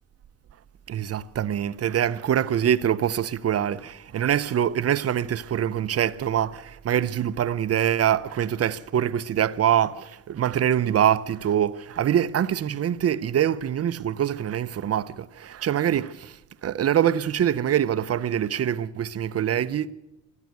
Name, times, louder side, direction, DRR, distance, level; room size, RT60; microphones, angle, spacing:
voice 1, 0.9-16.4 16.6-19.9, right 10 dB, 45° right, 0.7 m, -24 dB
13.5 x 10.5 x 9.2 m
cardioid pair, 75°, 33 cm